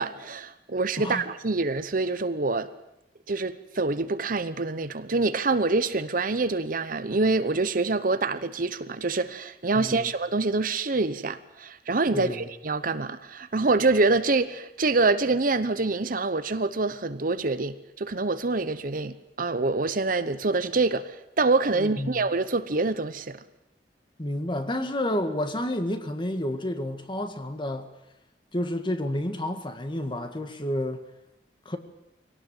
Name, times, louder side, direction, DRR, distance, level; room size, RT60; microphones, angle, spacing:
voice 1, 0.0-2.7 3.3-23.4, right 3 dB, 50° right, 0.9 m, -26 dB
voice 2, 1.0-1.3 9.7-10.1 12.1-12.5 21.7-22.2 24.2-27.9 28.5-31.0 31.7-31.8, left 1 dB, 30° left, 1.8 m, -30 dB
22.5 x 18.0 x 9.0 m
head